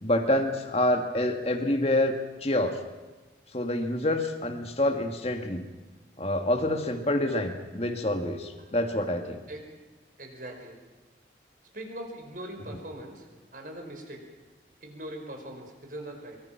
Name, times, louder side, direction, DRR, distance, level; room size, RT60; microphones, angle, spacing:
voice 1, 0.0-2.8 3.5-5.6 6.2-9.4, left 1 dB, 35° left, 5 dB, 2.3 m, -27 dB
voice 2, 10.2-10.8 11.7-13.3 13.5-14.3 14.8-16.4, right 1 dB, 50° right, 3 dB, 5.4 m, -41 dB
24.5 x 24.0 x 6.0 m, 1.2 s
head